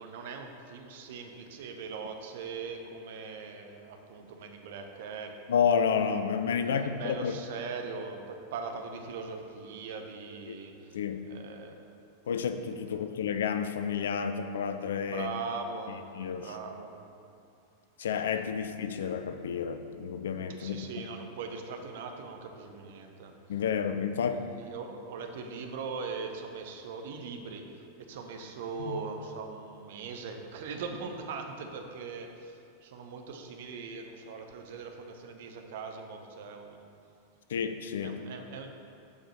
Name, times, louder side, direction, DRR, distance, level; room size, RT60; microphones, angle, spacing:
voice 1, 0.0-5.4 6.6-11.0 11.3-11.9 15.1-16.0 16.4-17.0 18.6-18.7 20.6-23.3 24.5-36.9 38.0-38.7, right 5 dB, 55° right, 4 dB, 0.8 m, -40 dB
voice 2, 5.5-7.4 10.5-10.6 10.9-11.3 12.3-15.3 15.9-16.5 18.0-20.9 23.5-24.4 28.8-28.9 37.5-38.2, left 7 dB, 60° left, 9 dB, 0.4 m, -30 dB
7.1 x 5.1 x 6.3 m, 2.5 s
figure-of-eight pair, 90°, 0 cm